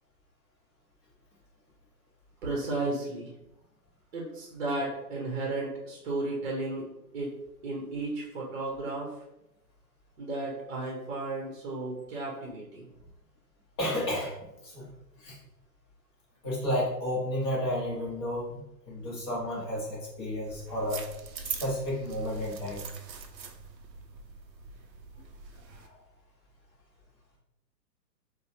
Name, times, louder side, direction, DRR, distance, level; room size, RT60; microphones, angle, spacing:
voice 1, 2.4-3.3 4.1-7.3 7.6-9.1 10.2-12.9, right 2 dB, 40° right, -2 dB, 0.7 m, -34 dB
voice 2, 13.8-14.3 14.6-14.9 15.2-15.4 16.4-21.0 21.4-22.8 25.7-26.0, left 1 dB, 15° left, -6 dB, 0.6 m, -32 dB
sound 1, 20.5-25.9, right 6 dB, 85° right, 0.6 m, -42 dB
4.5 x 2.1 x 2.9 m, 0.90 s
figure-of-eight pair, 135°, 50 cm